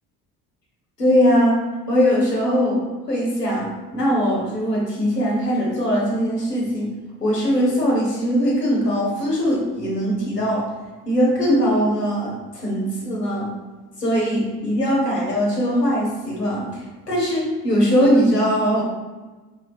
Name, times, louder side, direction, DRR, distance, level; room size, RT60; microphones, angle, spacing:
voice 1, 1.0-1.6 1.9-2.8 3.1-6.9 7.2-10.7 11.1-13.5 14.0-18.8, equal, 90° left, -4 dB, 0.9 m, -20 dB
5.2 x 3.2 x 2.7 m, 1.2 s
figure-of-eight pair, 55°, 47 cm